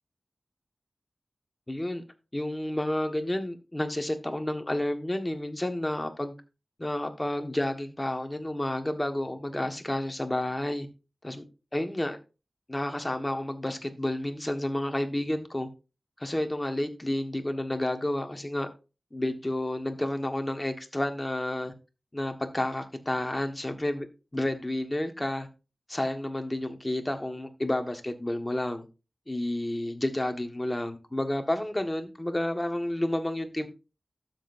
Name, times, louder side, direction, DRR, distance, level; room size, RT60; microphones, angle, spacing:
voice 1, 1.7-2.0 2.3-6.3 6.8-10.9 11.2-11.4 11.7-12.2 12.7-15.7 16.2-18.7 19.1-21.7 22.1-24.1 24.3-25.5 25.9-28.8 29.3-33.7, left 1 dB, 20° left, 1.5 m, -30 dB
12.5 x 7.6 x 2.6 m
wide cardioid pair, 80°, 0 cm